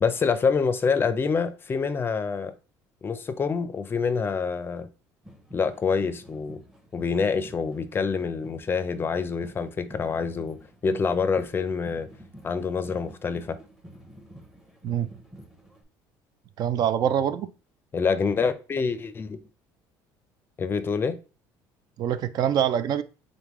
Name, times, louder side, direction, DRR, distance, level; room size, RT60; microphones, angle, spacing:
voice 1, 0.0-2.5 3.0-4.9 5.5-6.6 6.9-12.1 12.4-13.6 17.9-19.4 20.6-21.2, left 5 dB, 25° left, 0.5 m, -26 dB
sound 1, 5.2-15.8, equal, 5° right, 0.7 m, -49 dB
voice 2, 16.6-17.5 22.0-23.0, right 9 dB, 55° right, 0.4 m, -24 dB
3.9 x 3.6 x 3.0 m
cardioid pair, 115°, 8 cm